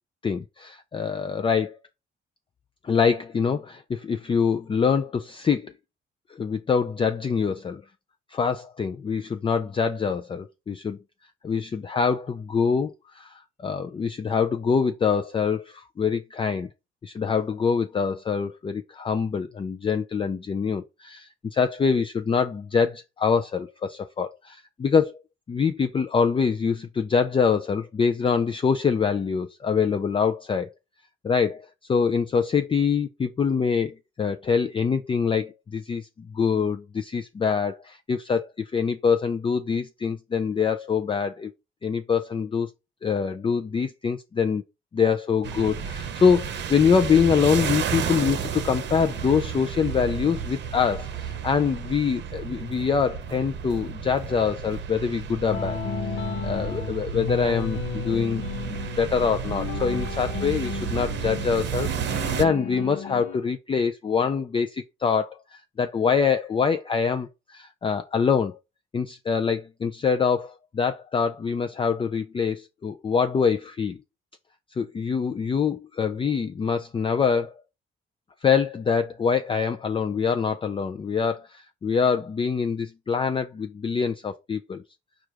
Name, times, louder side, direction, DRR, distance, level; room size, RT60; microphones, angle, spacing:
voice 1, 0.2-1.8 2.8-5.7 6.3-7.8 8.3-11.0 11.4-16.7 17.0-25.1 25.5-30.7 31.2-41.5 41.8-42.7 43.0-44.6 44.9-68.6 68.9-74.0 74.8-77.5 78.4-84.8, left 6 dB, 25° left, 0.4 m, -25 dB
sound 1, 45.4-62.4, right 7 dB, 60° right, 0.8 m, -32 dB
sound 2, 55.5-63.4, left 6 dB, 80° left, 0.9 m, -33 dB
4.7 x 2.4 x 4.6 m
cardioid pair, 90°, 20 cm